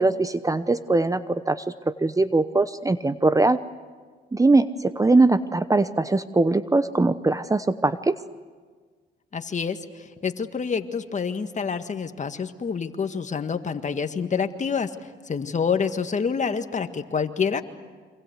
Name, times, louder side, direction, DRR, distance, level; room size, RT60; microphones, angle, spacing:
voice 1, 0.0-3.6 4.3-8.2, right 2 dB, 15° right, 13 dB, 0.9 m, -21 dB
voice 2, 9.3-17.6, left 6 dB, 35° left, 8 dB, 1.8 m, -27 dB
28.0 x 25.5 x 8.2 m, 1.5 s
supercardioid pair, 75°, 20 cm